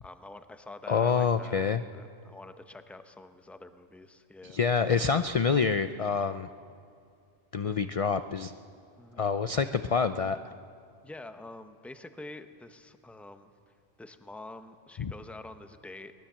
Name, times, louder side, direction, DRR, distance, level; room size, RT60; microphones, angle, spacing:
voice 1, 0.0-4.6 9.0-9.3 11.0-13.5 14.0-16.1, left 2 dB, ahead, 8 dB, 0.7 m, -47 dB
voice 2, 0.9-1.8 4.4-6.5 7.5-8.5 9.2-10.5 15.0-15.1, left 5 dB, 45° left, 10 dB, 0.5 m, -27 dB
23.0 x 19.5 x 7.4 m, 2.4 s
omnidirectional pair, 1.2 m